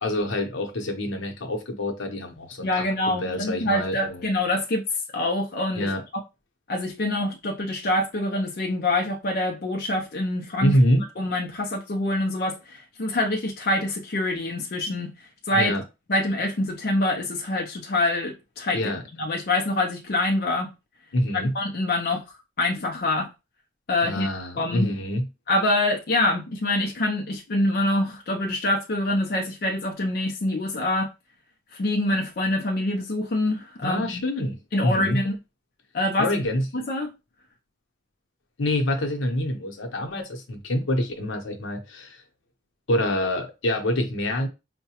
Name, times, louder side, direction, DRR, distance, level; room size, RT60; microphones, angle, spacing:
voice 1, 0.0-4.3 5.7-6.0 10.6-11.1 15.5-15.8 18.7-19.0 21.1-21.5 24.0-25.3 33.8-35.2 36.2-36.7 38.6-42.2 42.9-44.5, left 1 dB, 80° left, 0.8 m, -26 dB
voice 2, 2.6-4.8 5.1-5.9 6.7-10.7 11.2-15.1 15.5-15.7 16.1-18.8 19.2-20.7 21.3-22.2 22.6-23.3 23.9-24.3 24.6-24.9 25.5-31.1 31.7-34.1 34.7-35.3 35.9-36.3 36.7-37.1, left 1 dB, 50° left, 0.5 m, -25 dB
4.6 x 2.2 x 2.8 m
head